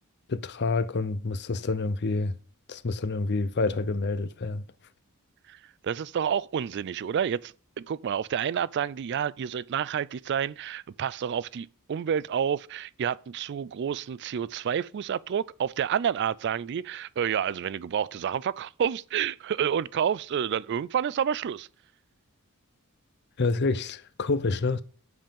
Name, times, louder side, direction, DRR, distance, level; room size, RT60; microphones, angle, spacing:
voice 1, 0.3-2.4 2.7-4.6 23.4-24.8, left 3 dB, 50° left, 0.6 m, -28 dB
voice 2, 5.8-21.7, right 8 dB, 50° right, 0.3 m, -29 dB
7.8 x 5.4 x 6.8 m
head